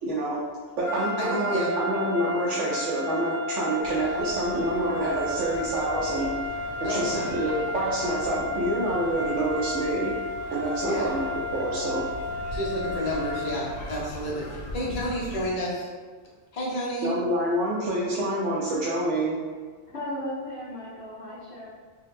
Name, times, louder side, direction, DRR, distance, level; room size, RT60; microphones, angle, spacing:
voice 1, 0.0-0.4 0.8-6.3 6.8-10.2 10.5-11.2 11.5-12.0 17.0-19.4, right 1 dB, 80° right, -6 dB, 0.9 m, -27 dB
sound 1, 0.8-13.7, left 2 dB, 40° right, 0.9 m, -33 dB
voice 2, 1.2-1.7 6.8-7.3 10.9-11.1 12.5-15.9 16.5-17.1, equal, 40° left, -5 dB, 0.7 m, -30 dB
sound 2, 3.8-15.5, left 1 dB, 85° left, 1.0 m, -41 dB
voice 3, 19.9-21.7, left 1 dB, 65° left, -9 dB, 1.0 m, -35 dB
3.7 x 2.2 x 2.6 m, 1.5 s
omnidirectional pair, 1.2 m